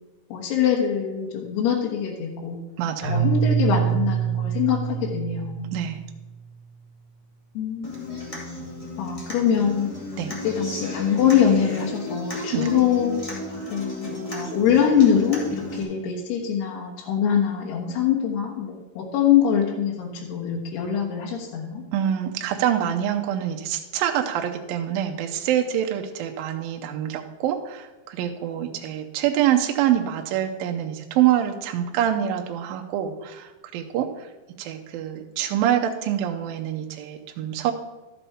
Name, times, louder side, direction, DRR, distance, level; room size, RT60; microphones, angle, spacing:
voice 1, 0.3-2.6 3.1-5.7 7.5-8.3 9.0-9.9 10.4-13.2 13.7-21.8, left 8 dB, 80° left, -3 dB, 3.4 m, -23 dB
voice 2, 2.8-3.3 5.7-6.0 10.2-10.3 12.5-12.7 21.9-34.3 34.6-37.7, right 10 dB, 75° right, 3 dB, 2.3 m, -25 dB
Keyboard (musical), 3.0-6.1, right 8 dB, 55° left, 3.0 m, -25 dB
Human voice / Acoustic guitar, 7.8-15.8, left 1 dB, 30° left, 0.6 m, -34 dB
12.5 x 7.0 x 4.3 m, 1.1 s
omnidirectional pair, 4.6 m